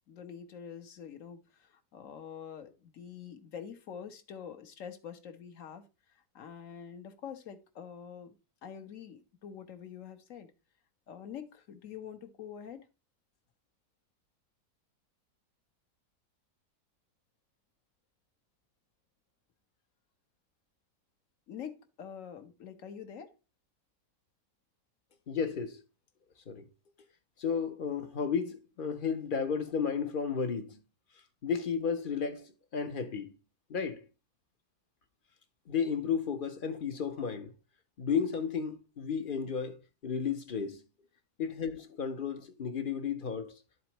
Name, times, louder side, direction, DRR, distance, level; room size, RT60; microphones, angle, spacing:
voice 1, 0.1-5.8 6.1-8.3 8.6-10.5 11.1-12.9 21.5-23.3, left 8 dB, 60° left, 1.3 m, -46 dB
voice 2, 25.3-25.8 26.5-26.7 27.4-30.8 31.4-33.3 33.7-34.0 35.7-37.5 38.0-40.8 41.4-43.5, left 6 dB, 45° left, 0.8 m, -33 dB
12.5 x 4.3 x 2.9 m
omnidirectional pair, 1.7 m